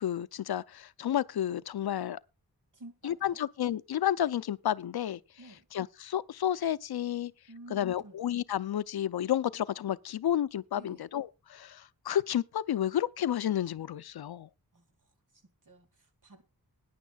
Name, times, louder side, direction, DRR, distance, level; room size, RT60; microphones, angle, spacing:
voice 1, 0.0-2.2 3.0-5.2 5.7-7.3 7.7-14.5, left 11 dB, 80° left, 0.6 m, -31 dB
voice 2, 2.7-3.4 5.4-5.7 7.5-8.2 10.7-11.1 14.7-16.4, right 2 dB, 55° right, 2.3 m, -52 dB
20.5 x 10.0 x 2.3 m
wide cardioid pair, 135°, 37 cm